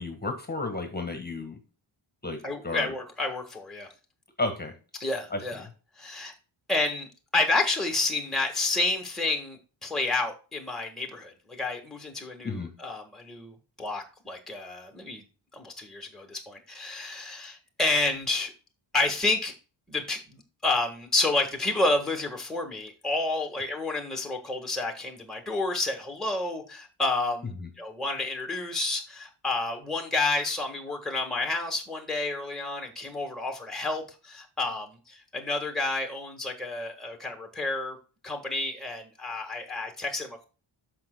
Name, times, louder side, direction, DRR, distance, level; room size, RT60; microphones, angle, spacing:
voice 1, 0.0-1.6 2.2-2.4 2.6-2.9 4.4-4.7 5.3-5.7 12.4-12.7 27.5-27.7, left 2 dB, 20° left, 5 dB, 1.5 m, -32 dB
voice 2, 2.4-3.9 5.0-5.6 6.0-6.3 6.7-15.2 15.5-18.5 18.9-19.5 19.9-38.0 38.2-40.4, left 2 dB, ahead, 3 dB, 1.5 m, -30 dB
13.5 x 5.1 x 2.2 m, 0.34 s
wide cardioid pair, 120°, 49 cm